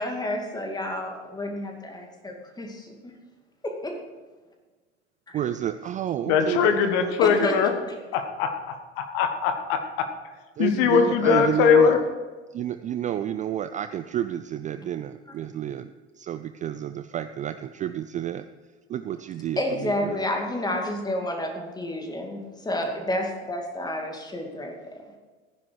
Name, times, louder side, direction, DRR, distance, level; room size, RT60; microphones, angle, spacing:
voice 1, 0.0-2.9 3.6-4.0 5.3-5.4 7.4-7.5 19.6-24.7, left 1 dB, 10° left, 2 dB, 2.4 m, -30 dB
voice 2, 5.3-7.5 10.6-11.9 12.5-18.5 18.9-20.3, right 11 dB, 20° right, 11 dB, 0.4 m, -30 dB
voice 3, 6.3-7.8 8.1-12.0, left 7 dB, 55° left, 6 dB, 1.6 m, -22 dB
14.5 x 10.5 x 4.8 m, 1.3 s
figure-of-eight pair, 75°, 35 cm